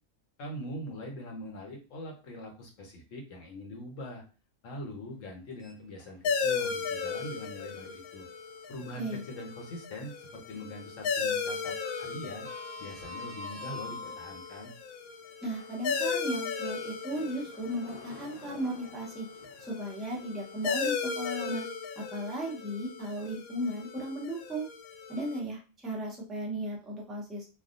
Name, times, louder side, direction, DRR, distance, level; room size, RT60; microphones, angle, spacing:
voice 1, 0.4-4.2 4.6-8.3 8.7-12.5 12.8-14.7, left 1 dB, 70° left, 1 dB, 1.3 m, -42 dB
Sliding door, 5.5-6.5 6.9-7.0 8.7-9.7 10.0-10.4 10.6-14.7 15.4-20.6, left 3 dB, 25° left, 1.1 m, -47 dB
sound 1, 6.2-25.4, left 5 dB, 85° left, 1.0 m, -36 dB
voice 2, 15.4-19.3 19.7-21.6 22.0-24.7 25.1-27.5, right 1 dB, ahead, -4 dB, 0.6 m, -36 dB
3.3 x 2.3 x 2.5 m, 0.33 s
omnidirectional pair, 1.4 m